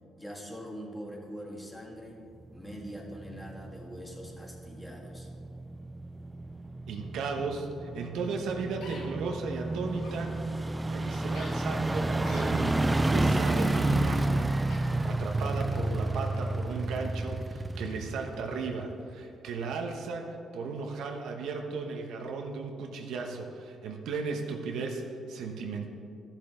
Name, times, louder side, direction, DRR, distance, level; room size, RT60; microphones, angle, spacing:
voice 1, 0.1-2.2 2.5-5.3, equal, 10° left, -1 dB, 2.0 m, -43 dB
sound 1, 2.6-19.1 19.5-19.6, right 2 dB, 15° right, 0.4 m, -31 dB
voice 2, 6.9-10.3 10.8-12.8 13.1-14.5 15.0-25.0 25.3-25.9, right 4 dB, 80° right, 3 dB, 1.0 m, -36 dB
sound 2, 8.8-9.0 10.0-10.2 11.3-11.5 12.2-12.5 13.1-14.0 14.7-14.8, left 3 dB, 90° left, 1.9 m, -47 dB
13.0 x 7.4 x 3.9 m, 2.5 s
cardioid pair, 90°, 0 cm